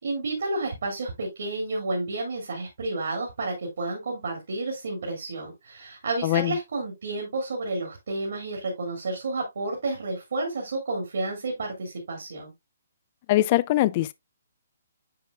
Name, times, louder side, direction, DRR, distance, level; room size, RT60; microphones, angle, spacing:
voice 1, 0.0-12.5, right 2 dB, 65° right, 2.6 m, -31 dB
voice 2, 6.2-6.5 13.3-14.1, left 15 dB, 35° left, 0.4 m, -22 dB
9.4 x 5.2 x 2.4 m
figure-of-eight pair, 135°, 0 cm